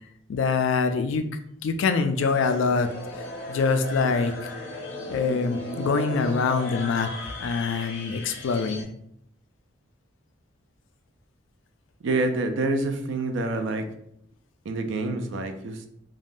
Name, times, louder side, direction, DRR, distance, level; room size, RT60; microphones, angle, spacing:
voice 1, 0.3-1.3 1.6-2.9 3.5-4.3 5.1-7.1 7.4-8.9, left 4 dB, 65° left, 8 dB, 0.3 m, -24 dB
sound 1, 2.2-8.8, left 1 dB, 85° left, 0.8 m, -36 dB
voice 2, 12.0-13.9 14.7-15.9, right 2 dB, 65° right, 7 dB, 0.4 m, -27 dB
3.4 x 2.1 x 2.5 m, 0.73 s
head